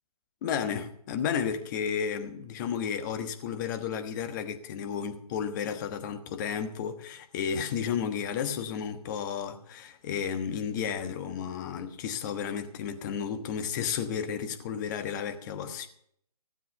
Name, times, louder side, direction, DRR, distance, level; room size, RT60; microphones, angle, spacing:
voice 1, 0.4-15.9, left 7 dB, 30° left, 1.2 m, -32 dB
16.5 x 7.6 x 6.7 m
figure-of-eight pair, 140°, 20 cm